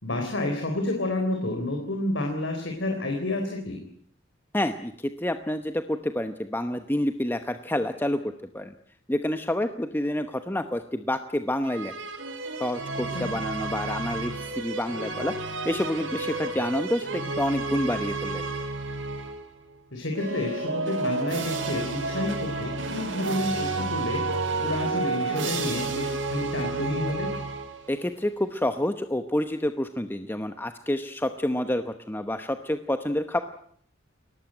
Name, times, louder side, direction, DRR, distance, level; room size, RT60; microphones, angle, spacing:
voice 1, 0.0-3.8 13.1-13.3 19.9-24.2 24.6-27.3, left 1 dB, 70° left, 3 dB, 4.0 m, -30 dB
voice 2, 4.5-8.7 9.1-11.9 12.6-15.3 15.6-18.4 27.9-33.4, left 1 dB, 10° left, 8 dB, 1.0 m, -28 dB
sound 1, 11.6-19.5 20.1-28.0, right 3 dB, 75° right, 5.1 m, -31 dB
22.0 x 18.0 x 9.0 m, 0.63 s
head